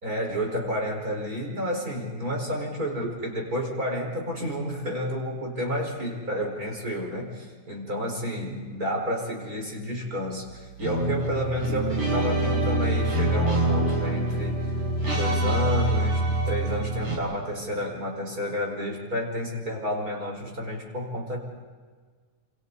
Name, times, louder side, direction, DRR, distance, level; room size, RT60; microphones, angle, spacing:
voice 1, 0.0-14.6 15.1-21.4, equal, 25° right, 0 dB, 5.2 m, -30 dB
sound 1, 10.8-17.2, right 1 dB, 60° right, 7.9 m, -25 dB
28.5 x 28.0 x 4.1 m, 1.5 s
omnidirectional pair, 3.4 m